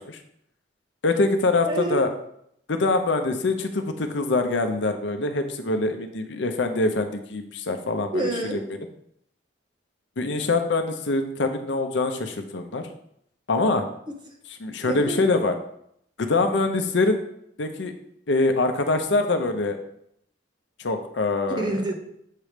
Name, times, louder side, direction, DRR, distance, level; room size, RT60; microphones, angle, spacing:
voice 1, 1.0-2.1 2.7-8.1 8.5-8.6 10.2-12.9 13.5-13.8 14.6-15.5 16.2-17.2 17.6-17.9 18.3-19.8 20.8-21.6, left 3 dB, 70° left, 7 dB, 0.6 m, -24 dB
voice 2, 1.6-2.0 8.1-8.6 14.9-15.2 21.5-22.0, right 2 dB, 25° right, 1 dB, 0.9 m, -27 dB
7.5 x 3.1 x 5.0 m, 0.72 s
head